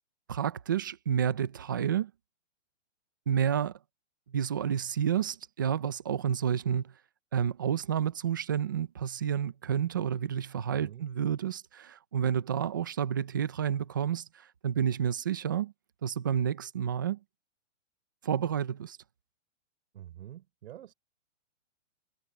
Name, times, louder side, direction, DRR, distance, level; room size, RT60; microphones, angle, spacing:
voice 1, 0.3-2.1 3.3-3.8 4.3-6.9 7.3-15.7 16.0-17.2 18.2-19.0, right 8 dB, 20° right, 0.3 m, -30 dB
voice 2, 19.9-20.9, right 12 dB, 55° right, 4.2 m, -47 dB
hypercardioid pair, 150°, 38 cm